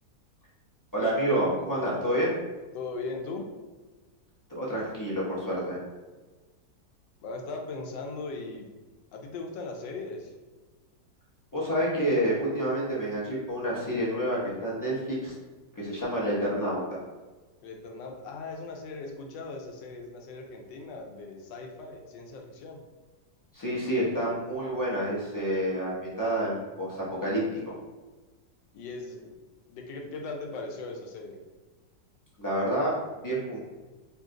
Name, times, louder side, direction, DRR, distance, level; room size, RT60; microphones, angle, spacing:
voice 1, 0.9-2.4 4.5-5.8 11.5-15.3 15.8-17.0 23.5-27.7 32.4-33.0 33.2-33.6, right 1 dB, 20° left, -7 dB, 0.5 m, -28 dB
voice 2, 2.7-3.5 7.2-8.7 9.1-10.3 17.6-22.8 28.7-29.3 29.7-31.4, left 3 dB, 90° left, 2 dB, 1.3 m, -39 dB
3.3 x 2.5 x 3.7 m, 1.3 s
omnidirectional pair, 1.9 m